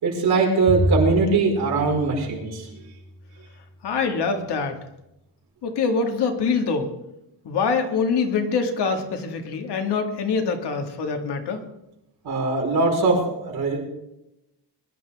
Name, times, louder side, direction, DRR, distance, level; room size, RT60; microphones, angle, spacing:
voice 1, 0.0-2.7 12.2-13.8, right 4 dB, 60° right, -1 dB, 5.0 m, -21 dB
Bowed string instrument, 0.7-3.2, equal, ahead, 6.8 m, -28 dB
voice 2, 3.8-4.8 5.6-6.9 7.4-11.6, left 5 dB, 70° left, 4 dB, 2.0 m, -24 dB
21.5 x 11.5 x 3.6 m, 0.88 s
wide cardioid pair, 165°, 42 cm